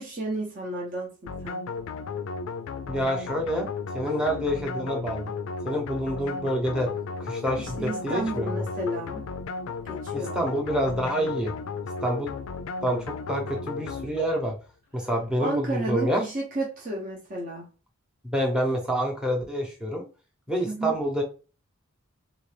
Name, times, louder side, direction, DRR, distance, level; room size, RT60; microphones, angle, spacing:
voice 1, 0.0-1.6 7.6-9.3 9.9-10.4 15.4-17.7 20.6-20.9, right 2 dB, 40° right, 0.8 m, -32 dB
sound 1, 1.3-14.6, left 5 dB, 75° left, 0.3 m, -34 dB
voice 2, 2.9-5.3 5.6-6.9 7.2-8.6 10.1-11.5 12.0-12.3 12.8-14.6 14.9-16.2 18.2-20.1 20.5-21.2, equal, 5° right, 0.8 m, -27 dB
3.7 x 2.5 x 3.3 m
head